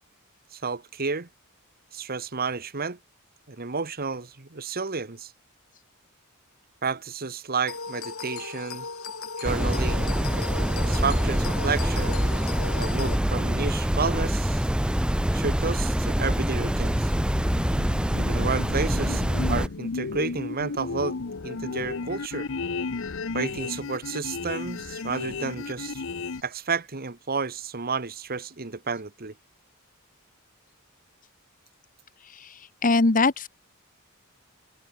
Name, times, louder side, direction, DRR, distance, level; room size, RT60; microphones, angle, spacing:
voice 1, 0.5-1.3 1.9-3.0 3.5-5.3 6.8-8.9 9.4-10.1 10.7-12.3 12.8-14.6 15.3-17.1 18.1-22.5 23.3-26.0 26.4-29.3, right 4 dB, 45° right, 1.4 m, -31 dB
sound 1, 7.7-13.2, left 4 dB, 90° left, 4.4 m, -37 dB
sound 2, 9.4-19.7, equal, 5° right, 0.6 m, -25 dB
sound 3, 17.2-26.4, left 4 dB, 65° left, 0.8 m, -34 dB
voice 2, 32.8-33.5, left 3 dB, 40° left, 1.2 m, -21 dB
head